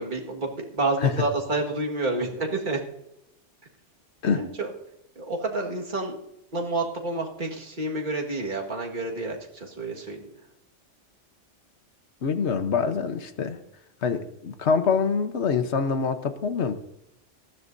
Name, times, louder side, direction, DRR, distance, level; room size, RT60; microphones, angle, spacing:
voice 1, 0.0-2.8 4.3-4.7 5.2-6.2 6.5-10.2, right 2 dB, 40° right, 0 dB, 1.9 m, -29 dB
voice 2, 12.2-13.6 14.0-16.7, left 6 dB, 65° left, 9 dB, 1.2 m, -25 dB
19.0 x 13.5 x 2.6 m, 0.85 s
omnidirectional pair, 1.3 m